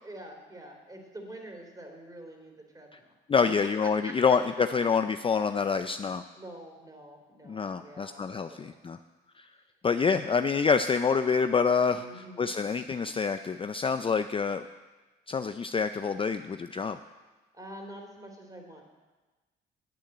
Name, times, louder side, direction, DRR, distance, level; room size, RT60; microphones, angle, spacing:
voice 1, 0.0-3.1 3.8-4.4 6.3-8.8 10.1-10.4 11.9-12.5 17.5-18.9, right 1 dB, 20° right, 2 dB, 3.1 m, -46 dB
voice 2, 3.3-6.2 7.5-9.0 9.8-12.0 12.4-14.6 15.3-17.0, left 5 dB, 25° left, 9 dB, 0.4 m, -27 dB
9.2 x 8.5 x 8.8 m, 1.2 s
cardioid pair, 90°, 20 cm